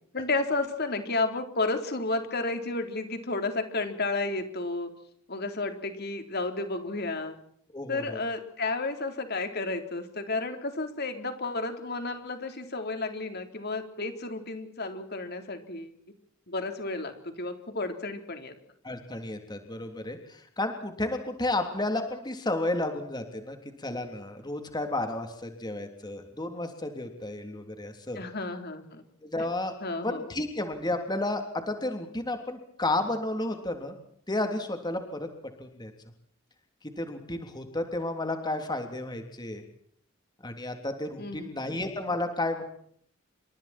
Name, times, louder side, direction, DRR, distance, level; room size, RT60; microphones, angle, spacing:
voice 1, 0.1-4.9 5.3-7.4 7.9-15.9 16.5-18.5 28.2-29.0 29.8-30.3 41.2-41.5, left 3 dB, 50° left, 6 dB, 4.0 m, -32 dB
voice 2, 7.7-8.2 18.8-28.2 29.2-29.7 30.0-34.0 34.3-35.3 35.6-35.9 37.0-39.6 40.4-42.6, left 2 dB, 20° left, 5 dB, 3.3 m, -32 dB
29.0 x 26.5 x 4.5 m, 0.64 s
head